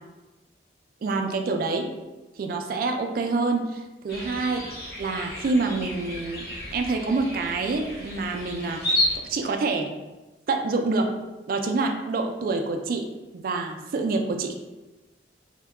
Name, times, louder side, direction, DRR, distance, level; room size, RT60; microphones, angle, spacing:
voice 1, 1.0-1.9 2.4-4.6 5.0-6.5 6.7-8.8 9.3-9.9 10.5-11.1 11.5-13.1 13.3-14.5, right 3 dB, 50° right, 4 dB, 0.3 m, -26 dB
sound 1, 4.1-9.2, left 1 dB, 60° left, 1.0 m, -31 dB
2.7 x 2.2 x 3.4 m, 1.1 s
head